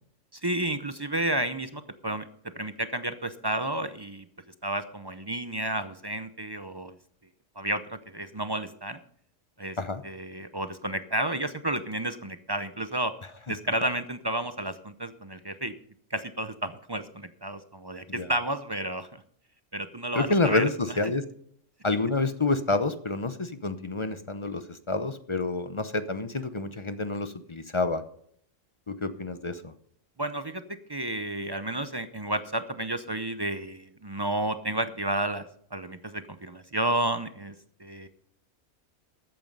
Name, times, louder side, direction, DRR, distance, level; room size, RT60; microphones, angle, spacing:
voice 1, 0.3-2.3 2.6-4.3 4.6-7.0 7.6-9.0 9.6-9.8 10.0-13.1 13.5-15.7 16.1-19.2 19.7-20.7 30.2-30.6 30.9-37.5 37.8-38.1, right 1 dB, 30° right, 11 dB, 0.5 m, -31 dB
voice 2, 20.1-21.2 21.8-28.0 28.9-29.7, left 3 dB, 30° left, 11 dB, 0.6 m, -28 dB
13.5 x 9.1 x 5.4 m, 0.65 s
omnidirectional pair, 1.4 m